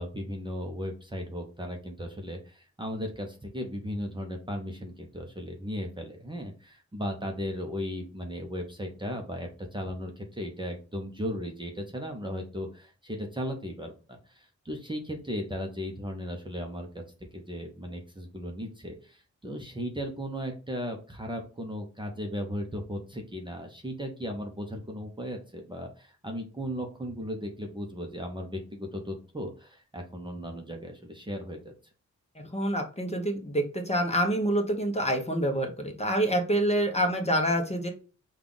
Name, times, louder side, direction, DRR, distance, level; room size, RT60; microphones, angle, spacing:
voice 1, 0.0-17.0 17.3-31.7, equal, 15° right, 2 dB, 0.7 m, -36 dB
voice 2, 32.4-37.9, right 1 dB, 20° left, 2 dB, 0.8 m, -27 dB
5.5 x 2.4 x 3.8 m, 0.35 s
wide cardioid pair, 155°, 30 cm